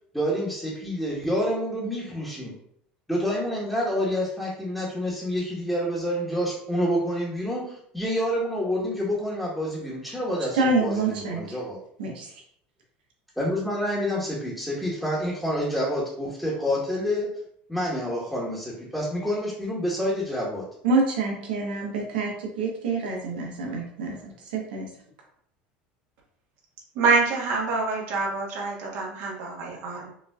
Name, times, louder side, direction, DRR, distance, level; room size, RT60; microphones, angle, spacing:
voice 1, 0.1-2.5 3.1-11.8 13.4-17.3 17.7-20.6, equal, ahead, -8 dB, 1.3 m, -28 dB
voice 2, 10.5-11.6 12.0-12.3 20.8-24.9, right 3 dB, 85° right, 0 dB, 1.1 m, -27 dB
voice 3, 26.9-30.1, right 4 dB, 65° right, -2 dB, 1.3 m, -26 dB
5.3 x 2.6 x 2.3 m, 0.67 s
hypercardioid pair, 90°, 5 cm